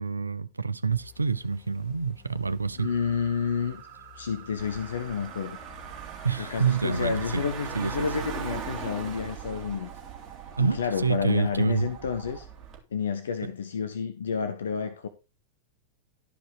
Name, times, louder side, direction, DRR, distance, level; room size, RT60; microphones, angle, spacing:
voice 1, 0.0-2.9 6.2-7.5 7.8-8.1 10.6-11.9, right 5 dB, 80° right, 0.6 m, -27 dB
sound 1, 0.9-9.3, left 11 dB, 35° left, 5.4 m, -53 dB
voice 2, 2.8-3.8 4.1-5.6 6.4-9.9 10.6-12.5 12.9-15.1, left 6 dB, 65° left, 0.8 m, -30 dB
sound 2, 2.8-12.4, right 10 dB, 45° right, 2.5 m, -49 dB
Car / Engine, 4.6-12.8, right 7 dB, 25° right, 2.6 m, -40 dB
12.0 x 5.2 x 4.8 m
figure-of-eight pair, 90°, 0 cm